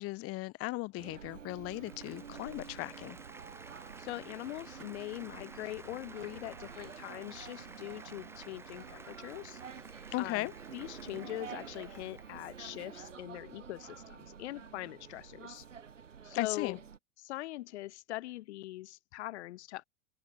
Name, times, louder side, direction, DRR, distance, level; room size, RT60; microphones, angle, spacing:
voice 1, 0.0-3.2 10.1-10.5 16.3-16.8, left 21 dB, 40° left, 1.0 m, -37 dB
sound 1, 1.0-17.0, right 7 dB, 85° right, 3.7 m, -49 dB
Applause, 1.4-12.9, right 3 dB, 5° right, 1.1 m, -54 dB
voice 2, 4.0-9.6 10.2-15.7 16.2-16.8 17.2-19.8, left 16 dB, 65° left, 0.6 m, -42 dB
hypercardioid pair, 90°, 37 cm